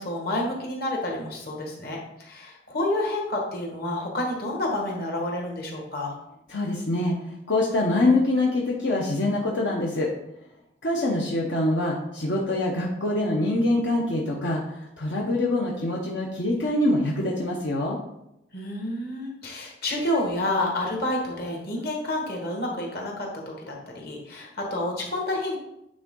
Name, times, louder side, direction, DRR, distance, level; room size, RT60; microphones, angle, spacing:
voice 1, 0.0-6.1 18.5-25.6, left 1 dB, 60° left, 0 dB, 1.6 m, -29 dB
voice 2, 6.5-10.1 10.8-18.0, left 2 dB, 80° left, -3 dB, 1.0 m, -25 dB
8.8 x 3.7 x 3.8 m, 0.83 s
head